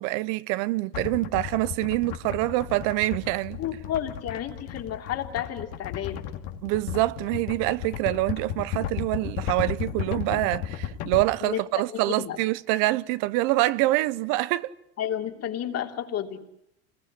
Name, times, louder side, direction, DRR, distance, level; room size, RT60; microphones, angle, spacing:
voice 1, 0.0-3.6 6.6-14.7, right 18 dB, 70° right, 1.0 m, -26 dB
sound 1, 0.9-11.2, left 9 dB, 75° left, 2.5 m, -34 dB
voice 2, 3.6-6.3 11.4-11.6 11.9-12.4 15.0-16.5, left 10 dB, 45° left, 3.1 m, -31 dB
27.5 x 21.5 x 9.9 m
supercardioid pair, 100°, 34 cm